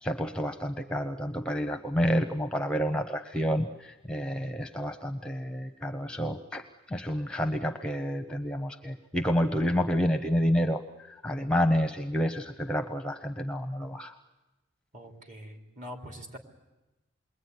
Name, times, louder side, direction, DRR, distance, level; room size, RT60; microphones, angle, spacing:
voice 1, 0.0-14.2, equal, 5° left, 6 dB, 0.9 m, -29 dB
voice 2, 14.9-16.4, equal, 40° right, 3 dB, 3.4 m, -44 dB
28.0 x 22.0 x 9.6 m, 1.0 s
head